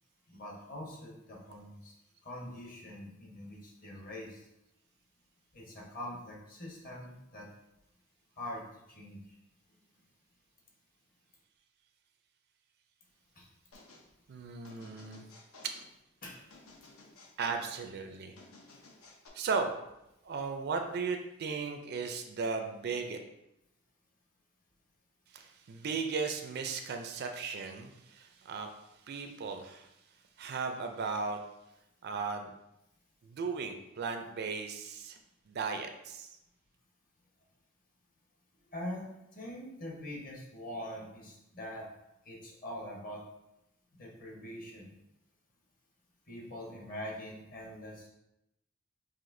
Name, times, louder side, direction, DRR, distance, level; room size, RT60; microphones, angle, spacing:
voice 1, 0.3-1.9 2.2-4.5 5.5-7.5 8.4-8.6 8.9-9.2 13.4-13.5 16.2-16.4 38.7-41.9 42.2-43.2 43.9-45.0 46.3-48.1, left 1 dB, 45° left, -3 dB, 1.1 m, -43 dB
sound 1, 13.7-14.1 14.6-15.9 16.5-17.8 18.4-19.3, left 3 dB, 85° left, 0.7 m, -55 dB
voice 2, 14.3-15.3 15.6-15.7 17.4-18.4 19.3-19.7 20.2-23.2 25.3-28.8 29.1-29.9 30.4-31.4 32.0-32.5 33.3-35.2 35.5-36.3, right 5 dB, 50° right, 5 dB, 0.4 m, -36 dB
5.7 x 2.6 x 2.6 m, 0.86 s
head